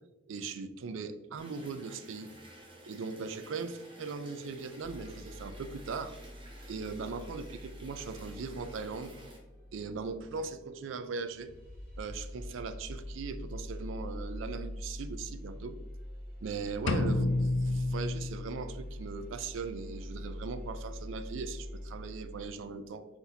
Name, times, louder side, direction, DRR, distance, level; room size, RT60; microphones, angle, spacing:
voice 1, 0.3-2.3 2.9-6.1 6.7-9.2 9.7-11.6 12.0-15.9 16.4-23.1, right 4 dB, 75° right, 10 dB, 0.4 m, -39 dB
sound 1, 1.4-9.4, right 1 dB, 25° right, 0.6 m, -53 dB
sound 2, 4.8-22.5, equal, 45° right, 1.5 m, -44 dB
sound 3, 16.9-18.8, left 2 dB, 75° left, 0.4 m, -30 dB
4.3 x 2.7 x 3.9 m, 1.1 s
head